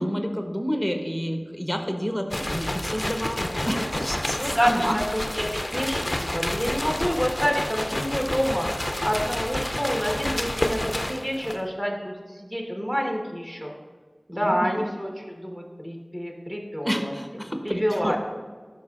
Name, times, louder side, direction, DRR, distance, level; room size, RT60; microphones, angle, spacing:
voice 1, 0.0-5.0 14.3-14.8 16.8-18.2, equal, 5° left, 4 dB, 0.9 m, -29 dB
sound 1, 2.3-11.7, left 1 dB, 35° left, 0.4 m, -29 dB
voice 2, 4.3-13.7 14.3-17.1 17.6-18.2, equal, 15° right, 0 dB, 1.2 m, -28 dB
11.5 x 5.2 x 2.4 m, 1.5 s
wide cardioid pair, 45°, 0 cm